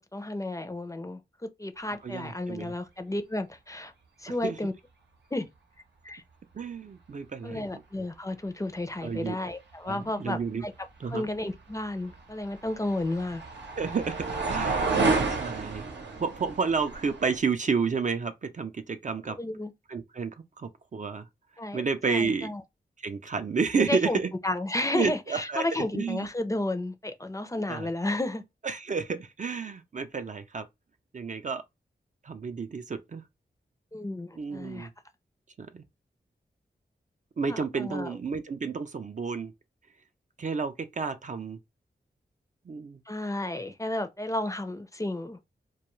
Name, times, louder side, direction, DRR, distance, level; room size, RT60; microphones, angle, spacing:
voice 1, 0.1-1.2 1.6-3.9 4.2-4.7 5.3-5.5 6.0-6.2 7.4-10.7 11.1-13.4 19.4-19.7 21.6-22.6 23.8-28.4 33.9-34.9 37.5-38.1 43.1-45.4, left 1 dB, 15° left, 0.4 m, -32 dB
voice 2, 2.0-2.7 4.4-4.6 6.5-7.6 9.0-9.4 9.8-10.6 11.0-11.3 13.8-15.8 16.2-19.4 19.9-20.3 20.6-21.3 21.7-22.5 23.0-24.3 24.9-26.3 27.7-27.9 28.6-30.7 31.1-31.6 32.2-33.2 34.4-34.9 35.6-35.8 37.4-39.5 40.4-41.6 42.7-43.0, right 5 dB, 45° right, 0.4 m, -31 dB
sound 1, 12.1-17.4, right 3 dB, 80° right, 0.8 m, -30 dB
2.2 x 2.2 x 3.0 m
cardioid pair, 45°, 18 cm